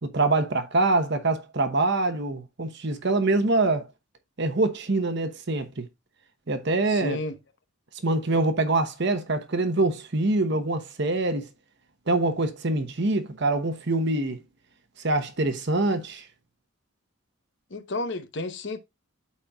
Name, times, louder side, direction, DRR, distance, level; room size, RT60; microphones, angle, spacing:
voice 1, 0.0-3.9 4.4-5.9 6.5-7.2 8.0-11.5 12.1-14.4 15.0-16.2, right 2 dB, 55° right, 1.0 m, -24 dB
voice 2, 6.9-7.4 17.7-18.8, left 2 dB, 55° left, 0.9 m, -32 dB
12.5 x 4.3 x 2.3 m
head